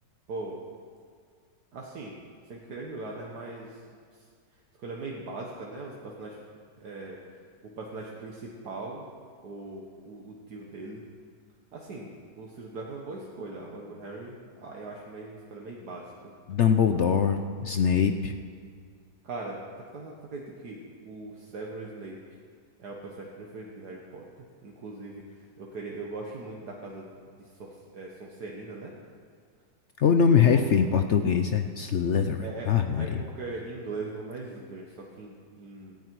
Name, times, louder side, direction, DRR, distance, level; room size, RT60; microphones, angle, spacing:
voice 1, 0.3-0.6 1.7-2.2 2.5-3.8 4.1-4.3 4.8-6.4 6.8-7.2 7.6-9.1 9.4-11.0 11.7-12.1 12.4-16.3 19.2-22.2 22.8-28.9 30.3-30.7 32.4-36.0, right 3 dB, 65° right, -2 dB, 1.9 m, -40 dB
voice 2, 16.5-18.3 30.0-33.2, left 7 dB, 65° left, 8 dB, 0.7 m, -23 dB
18.0 x 14.0 x 4.7 m, 2.1 s
omnidirectional pair, 1.8 m